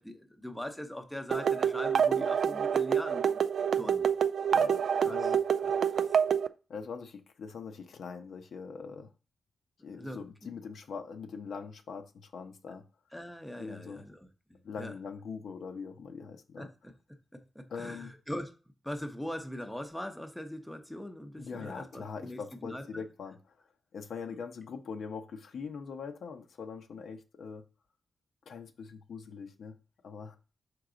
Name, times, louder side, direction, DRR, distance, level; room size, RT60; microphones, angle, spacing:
voice 1, 0.0-3.4 3.8-4.1 5.1-5.3 5.9-6.0 9.9-10.2 13.1-14.3 14.8-14.9 16.6-16.7 17.3-18.5 18.8-23.0, equal, 5° left, 0.7 m, -41 dB
sound 1, 1.3-6.5, right 7 dB, 70° right, 0.3 m, -27 dB
voice 2, 4.5-5.4 6.7-9.1 9.8-12.8 13.6-14.0 14.6-16.7 17.7-18.1 21.4-23.4 23.9-27.6 28.5-29.8 30.0-30.4, left 5 dB, 70° left, 0.8 m, -42 dB
5.9 x 4.7 x 3.8 m
wide cardioid pair, 135°, 0 cm